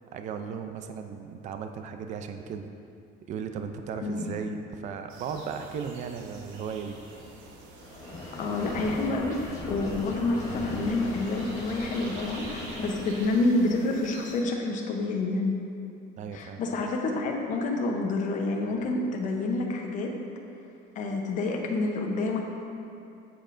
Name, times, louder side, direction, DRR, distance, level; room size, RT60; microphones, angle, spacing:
voice 1, 0.0-2.7 3.3-7.0 16.2-16.6, right 6 dB, 35° right, 7 dB, 0.4 m, -36 dB
voice 2, 4.0-4.4 8.4-15.6 16.3-20.1 21.0-22.4, left 2 dB, 40° left, 1 dB, 0.8 m, -28 dB
sound 1, 5.1-14.4, right 2 dB, 70° right, 1.1 m, -47 dB
sound 2, 7.8-13.5, left 2 dB, 15° left, 1.0 m, -38 dB
8.5 x 7.7 x 2.5 m, 2.7 s
cardioid pair, 170°, 21 cm